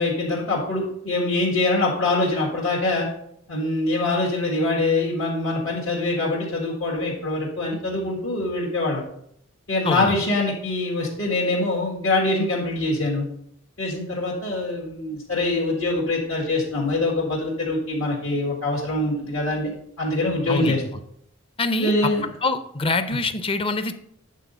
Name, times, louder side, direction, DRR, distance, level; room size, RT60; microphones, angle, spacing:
voice 1, 0.0-3.1 3.5-9.0 9.7-13.3 13.8-19.7 20.0-20.8 21.8-22.2, left 2 dB, 75° left, -5 dB, 1.9 m, -24 dB
voice 2, 20.5-20.8 21.6-21.9 22.4-23.9, left 3 dB, 25° left, 10 dB, 0.6 m, -24 dB
8.4 x 4.0 x 5.4 m, 0.71 s
head